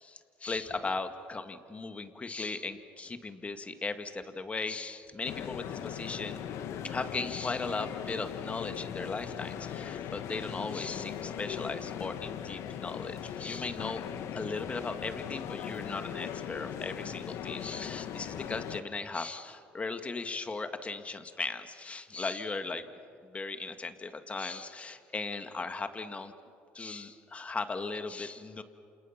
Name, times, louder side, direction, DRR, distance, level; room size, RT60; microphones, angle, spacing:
voice 1, 0.0-6.4 6.8-14.0 14.3-22.9 23.3-26.3 26.7-28.6, left 3 dB, 25° left, 8 dB, 1.9 m, -37 dB
sound 1, 5.2-18.8, left 9 dB, 70° left, 1.4 m, -39 dB
28.5 x 28.0 x 5.9 m, 2.3 s
supercardioid pair, 80°, 5 cm